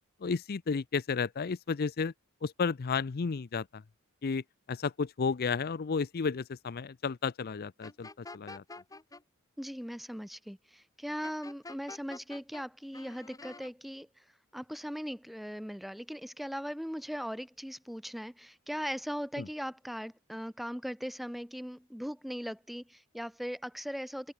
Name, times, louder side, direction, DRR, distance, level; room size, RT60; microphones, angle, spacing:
voice 1, 0.2-2.1 2.4-3.6 4.2-4.4 4.7-8.1 8.3-8.6 19.4-19.5, left 5 dB, 45° left, 0.5 m, -32 dB
sound 1, 7.8-9.2 11.2-12.6 12.9-13.7, left 3 dB, 15° left, 1.2 m, -47 dB
voice 2, 9.6-14.1 14.5-24.3, equal, ahead, 1.9 m, -39 dB
open air
head